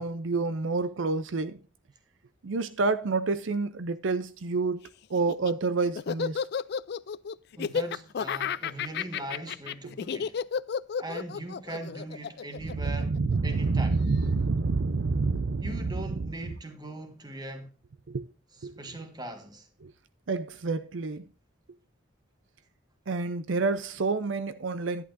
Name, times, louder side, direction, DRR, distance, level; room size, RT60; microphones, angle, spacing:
voice 1, 0.0-1.6 2.4-6.4 12.6-16.3 18.1-18.3 18.6-19.0 19.8-19.9 20.3-21.2 23.1-25.1, right 3 dB, 75° right, 0.6 m, -28 dB
Laughter, 5.1-13.6, left 7 dB, 55° left, 0.4 m, -32 dB
voice 2, 7.6-10.4 11.0-13.2 13.4-14.0 15.6-17.7 18.8-19.7, right 1 dB, 20° right, 1.5 m, -40 dB
11.0 x 11.0 x 2.6 m
head